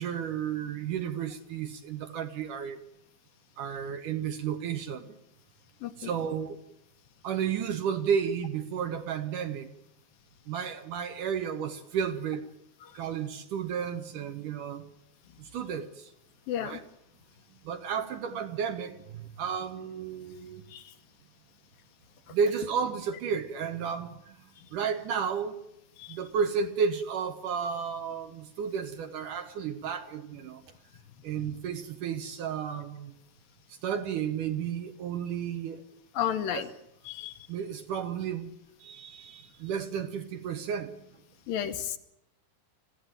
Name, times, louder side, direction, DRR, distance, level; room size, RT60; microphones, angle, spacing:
voice 1, 0.0-2.8 3.6-5.1 6.0-6.6 7.2-9.7 10.5-12.5 13.0-14.8 15.4-16.1 16.6-16.8 17.6-20.6 22.3-24.3 24.7-25.6 26.1-30.6 31.2-33.1 33.8-35.8 36.5-36.7 37.5-38.5 38.8-41.0, right 7 dB, 65° right, 2.4 m, -32 dB
voice 2, 16.5-16.8 20.7-20.8 26.0-26.2 36.2-36.7 37.1-37.3 41.5-42.0, left 10 dB, 70° left, 2.5 m, -32 dB
25.5 x 15.5 x 9.1 m
omnidirectional pair, 4.5 m